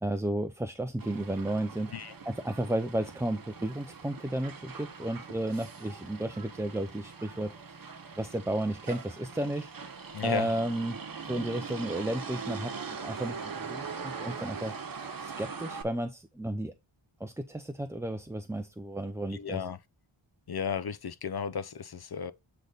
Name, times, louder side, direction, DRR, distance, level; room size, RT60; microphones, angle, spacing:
voice 1, 0.0-1.9 2.3-7.5 8.2-9.7 10.2-11.0 11.3-14.7 15.2-16.7 17.2-19.6, right 1 dB, 5° right, 0.4 m, -33 dB
Motor vehicle (road), 1.0-15.8, right 5 dB, 45° right, 0.9 m, -42 dB
voice 2, 10.1-10.5 19.3-19.8 20.5-22.3, left 7 dB, 50° left, 0.5 m, -34 dB
7.8 x 3.4 x 3.9 m
wide cardioid pair, 95°, 50 cm